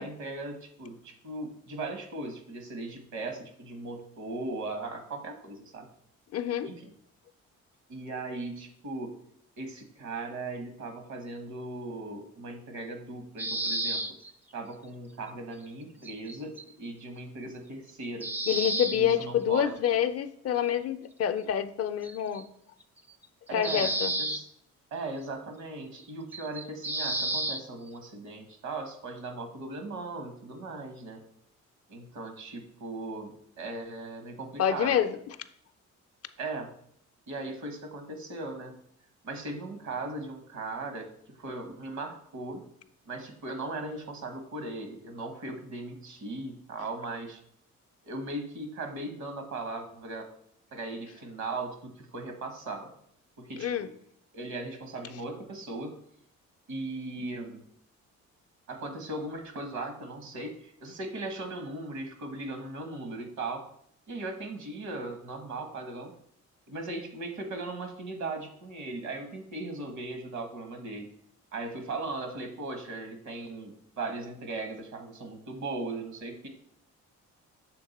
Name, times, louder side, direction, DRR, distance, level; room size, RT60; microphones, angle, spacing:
voice 1, 0.0-5.9 6.6-6.9 7.9-9.1 9.6-14.0 14.5-18.3 18.9-20.0 23.5-23.9 24.2-24.5 24.9-31.2 31.9-33.3 33.6-35.0 36.4-36.7 37.3-38.8 39.2-42.6 43.1-47.4 48.0-50.3 50.7-52.9 53.4-53.9 54.3-55.9 56.7-57.6 58.7-63.6 64.1-66.1 66.7-71.1 71.5-76.5, right 2 dB, 70° right, 6 dB, 1.3 m, -38 dB
voice 2, 6.3-6.7 18.5-22.4 23.5-24.1 34.6-35.3 53.6-53.9, left 9 dB, 55° left, 11 dB, 0.5 m, -27 dB
sound 1, 13.4-14.3 16.0-16.6 17.9-18.0 18.2-19.2 19.9-20.0 22.0-22.4 23.2-23.3 23.6-24.4 26.0-26.1 26.3-27.6, right 2 dB, 5° right, 0.3 m, -31 dB
6.6 x 3.5 x 4.1 m, 0.67 s
cardioid pair, 90°, 30 cm